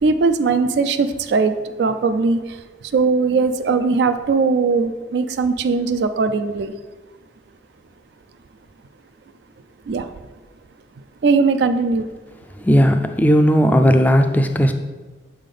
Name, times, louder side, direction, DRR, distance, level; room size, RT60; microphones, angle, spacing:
voice 1, 0.0-2.6 2.9-6.7 9.9-10.1 11.2-12.1, right 4 dB, 70° right, 9 dB, 0.4 m, -19 dB
voice 2, 12.6-14.7, equal, 10° left, 6 dB, 0.4 m, -15 dB
7.4 x 3.5 x 5.3 m, 1.3 s
head